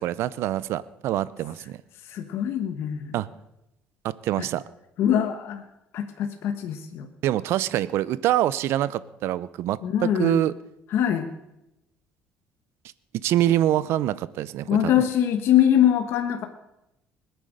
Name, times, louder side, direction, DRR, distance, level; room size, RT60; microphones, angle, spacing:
voice 1, 0.0-1.8 3.1-3.3 4.0-4.6 7.2-9.8 10.2-10.5 13.1-14.8, right 13 dB, 70° right, 18 dB, 0.7 m, -25 dB
voice 2, 2.0-3.2 4.4-4.5 5.0-5.6 5.9-7.1 9.8-10.4 10.9-11.3 14.7-16.4, left 10 dB, 65° left, 6 dB, 1.3 m, -23 dB
20.5 x 9.5 x 6.6 m, 0.88 s
cardioid pair, 120°, 5 cm